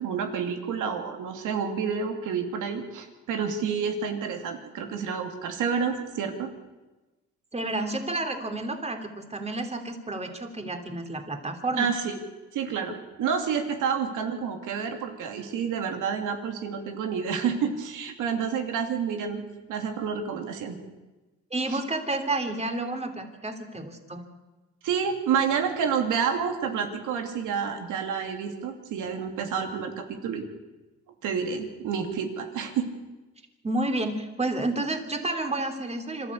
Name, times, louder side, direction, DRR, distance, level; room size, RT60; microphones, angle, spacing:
voice 1, 0.0-6.5 11.8-12.2 12.5-19.4 19.7-20.8 21.7-21.8 24.8-30.4 31.2-32.9, right 6 dB, 85° right, 4 dB, 2.8 m, -29 dB
voice 2, 7.5-11.9 21.5-24.2 33.6-36.3, right 2 dB, 20° right, 5 dB, 3.1 m, -30 dB
26.0 x 13.0 x 8.4 m, 1.1 s
cardioid pair, 90°, 30 cm